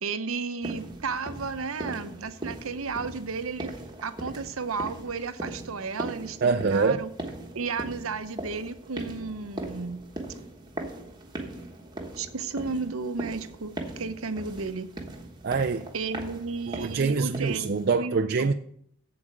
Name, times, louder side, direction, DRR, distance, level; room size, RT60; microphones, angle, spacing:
voice 1, 0.0-3.7 4.0-7.1 7.5-10.0 12.2-14.9 15.9-18.5, right 4 dB, 70° right, 0.8 m, -33 dB
sound 1, 0.6-17.9, right 1 dB, 20° right, 1.2 m, -39 dB
voice 2, 6.4-7.0 15.4-15.9 16.7-18.5, right 4 dB, 45° right, 0.4 m, -25 dB
7.9 x 7.7 x 7.5 m
head